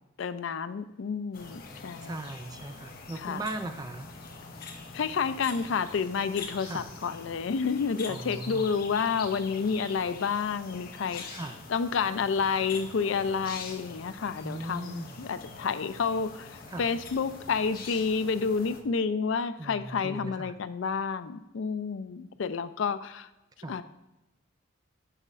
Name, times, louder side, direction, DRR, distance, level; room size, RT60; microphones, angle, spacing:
voice 1, 0.2-2.2 3.2-3.4 4.9-11.2 11.7-23.3 23.7-23.8, left 5 dB, 65° left, 12 dB, 0.4 m, -30 dB
sound 1, 1.3-18.8, left 4 dB, 45° left, 0.8 m, -44 dB
voice 2, 2.0-4.1 6.6-6.9 8.1-8.7 11.3-11.6 14.4-15.2 16.7-16.9 19.6-20.5 23.6-23.8, right 2 dB, 20° right, 7 dB, 0.4 m, -38 dB
9.0 x 5.4 x 2.4 m, 1.0 s
head